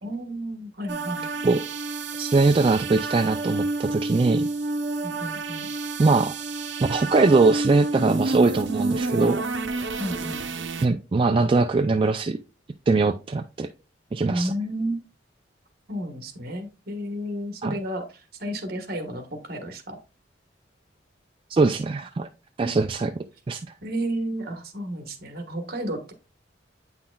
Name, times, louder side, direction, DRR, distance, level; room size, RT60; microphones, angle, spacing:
voice 1, 0.0-1.3 5.0-5.7 10.0-10.5 14.3-15.1 15.9-20.0 22.6-22.9 23.8-26.1, right 1 dB, 55° right, 6 dB, 1.3 m, -32 dB
sound 1, 0.9-10.9, right 3 dB, 75° right, 0.7 m, -29 dB
voice 2, 2.2-4.5 6.0-6.3 6.9-9.4 10.8-12.4 12.9-13.7 14.1-14.5 17.6-17.7 21.5-22.3 22.6-23.1 23.5-23.6, right 3 dB, 30° right, 6 dB, 0.3 m, -21 dB
8.5 x 5.8 x 2.3 m, 0.31 s
head